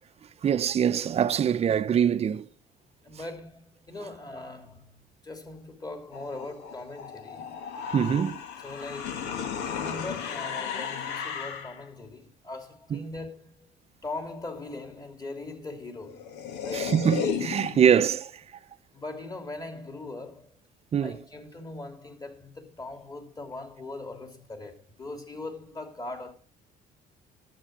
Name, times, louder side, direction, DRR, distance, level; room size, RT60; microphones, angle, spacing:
voice 1, 0.4-2.5 7.9-8.4 12.9-13.1 16.7-18.4 20.9-21.2, right 8 dB, 35° right, 0.7 m, -24 dB
voice 2, 3.0-7.5 8.6-13.7 14.0-16.9 18.9-20.5 21.0-26.3, left 2 dB, 20° left, 3.0 m, -40 dB
sound 1, 6.1-11.8 15.7-15.8 16.0-18.0, left 7 dB, 85° left, 1.7 m, -34 dB
11.5 x 7.7 x 6.1 m
cardioid pair, 110°, 17 cm